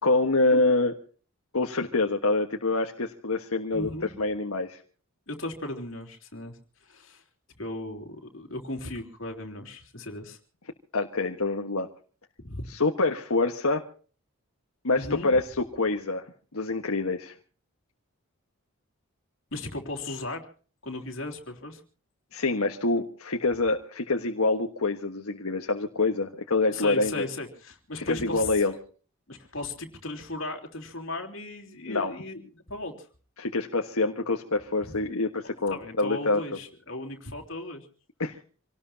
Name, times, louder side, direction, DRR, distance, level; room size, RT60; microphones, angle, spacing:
voice 1, 0.0-1.0 1.5-4.8 10.9-11.9 12.7-13.9 14.8-16.2 16.5-17.3 22.3-27.2 28.0-28.7 31.9-32.1 33.4-36.4 38.2-38.4, left 3 dB, 85° left, 3 dB, 1.5 m, -26 dB
voice 2, 3.7-4.1 5.3-7.2 7.5-10.4 12.4-12.6 14.9-15.3 19.5-20.5 20.8-21.8 26.7-28.5 29.3-33.1 34.8-35.0 35.7-37.8, left 2 dB, 60° left, 4 dB, 3.4 m, -36 dB
27.0 x 18.5 x 2.8 m, 0.41 s
head